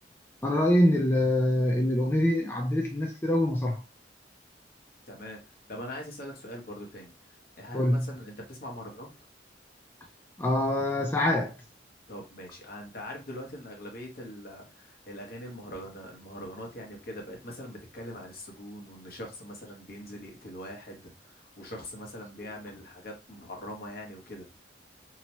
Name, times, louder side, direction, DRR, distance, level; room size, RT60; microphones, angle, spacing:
voice 1, 0.4-3.8 7.7-8.1 10.4-11.6, left 1 dB, 15° left, 0.3 m, -25 dB
voice 2, 5.1-9.1 12.1-24.5, equal, 55° left, 1.0 m, -42 dB
2.9 x 2.0 x 2.9 m
head